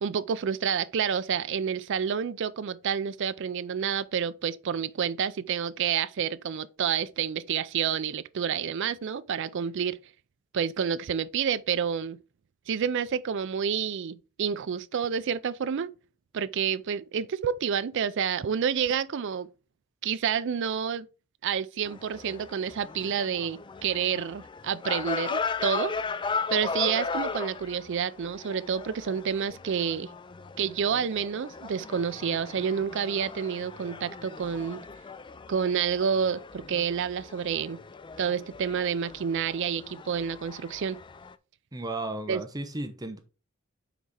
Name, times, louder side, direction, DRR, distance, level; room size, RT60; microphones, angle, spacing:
voice 1, 0.0-10.0 10.5-12.2 12.7-15.9 16.3-19.5 20.0-21.1 21.4-25.9 26.5-30.1 30.6-34.8 35.5-37.8 38.2-41.0 42.3-42.4, right 7 dB, 60° right, 0.4 m, -29 dB
sound 1, 21.8-41.3, left 4 dB, 20° left, 0.3 m, -37 dB
voice 2, 41.7-43.2, right 2 dB, 20° right, 0.7 m, -34 dB
5.9 x 4.1 x 4.8 m
head